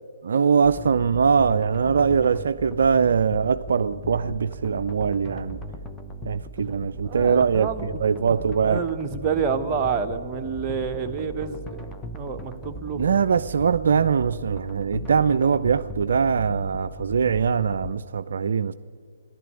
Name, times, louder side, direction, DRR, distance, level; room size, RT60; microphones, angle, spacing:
voice 1, 0.3-5.6 6.3-8.8 13.0-18.7, right 6 dB, 65° right, 12 dB, 0.3 m, -22 dB
sound 1, 0.6-17.9, equal, 5° left, 0.9 m, -38 dB
voice 2, 7.0-8.4 8.6-13.0, right 6 dB, 20° right, 4 dB, 1.0 m, -29 dB
12.5 x 11.0 x 9.6 m, 2.1 s
figure-of-eight pair, 135°, 0 cm